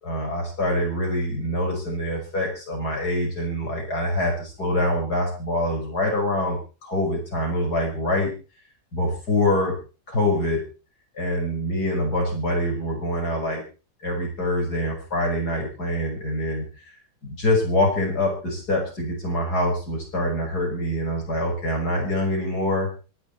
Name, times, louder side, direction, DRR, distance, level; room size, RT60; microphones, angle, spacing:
voice 1, 0.0-8.3 8.9-9.8 10.1-10.6 11.1-13.6 14.0-16.7 17.2-22.9, left 1 dB, 90° left, 1 dB, 6.5 m, -25 dB
24.0 x 10.5 x 4.2 m, 0.34 s
omnidirectional pair, 1.7 m